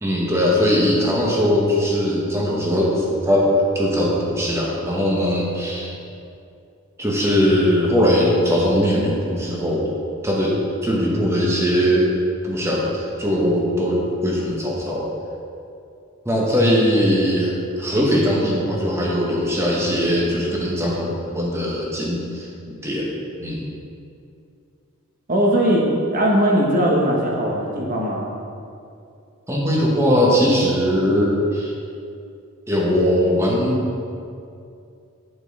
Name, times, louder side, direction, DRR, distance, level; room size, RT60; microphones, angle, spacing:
voice 1, 0.0-5.9 7.0-9.9 10.2-10.6 10.8-12.1 12.4-15.1 16.2-23.1 23.4-23.6 29.5-31.7 32.7-34.0, equal, 10° right, -3 dB, 1.1 m, -20 dB
voice 2, 25.3-25.9 26.1-28.3, equal, 40° right, -2 dB, 1.1 m, -19 dB
9.1 x 5.4 x 4.1 m, 2.5 s
head